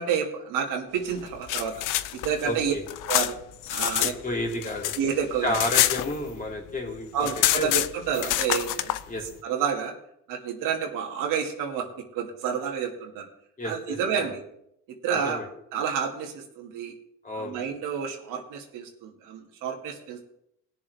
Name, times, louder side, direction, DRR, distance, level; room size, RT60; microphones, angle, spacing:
voice 1, 0.0-1.8 2.1-2.7 3.1-3.4 3.7-4.1 5.0-5.6 7.1-9.0 9.4-9.9 10.3-11.9 12.1-13.2 13.6-14.4 15.0-15.4 15.7-16.9 17.3-20.3, right 7 dB, 85° right, 1 dB, 2.4 m, -29 dB
sound 1, 1.2-4.1 4.4-6.6 6.9-7.0 7.2-9.0, left 14 dB, 75° left, 0.6 m, -26 dB
voice 2, 2.4-2.8 4.0-4.9 5.4-7.7 9.1-9.2 13.6-14.3 15.2-15.5 17.2-17.6, left 1 dB, 25° left, 0 dB, 3.4 m, -31 dB
20.5 x 7.0 x 3.5 m, 0.76 s
cardioid pair, 105°, 31 cm